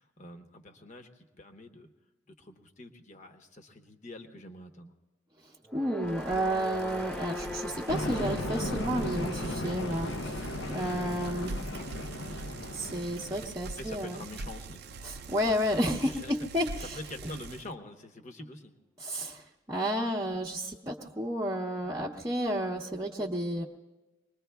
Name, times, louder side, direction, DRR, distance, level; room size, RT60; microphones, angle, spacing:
voice 1, 0.0-1.9 2.3-4.9 13.8-14.8 16.0-16.4 16.8-18.8, left 1 dB, 40° left, 5 dB, 1.0 m, -45 dB
voice 2, 5.4-11.6 12.7-14.2 15.0-17.0 19.0-23.6, equal, 20° right, -4 dB, 0.8 m, -32 dB
sound 1, 5.6-14.0, left 1 dB, 5° left, 0.4 m, -43 dB
Bicycle, 6.0-17.7, right 3 dB, 55° right, 0.4 m, -44 dB
sound 2, 7.9-13.5, left 1 dB, 80° left, 0.8 m, -36 dB
25.0 x 20.5 x 2.3 m, 1.1 s
head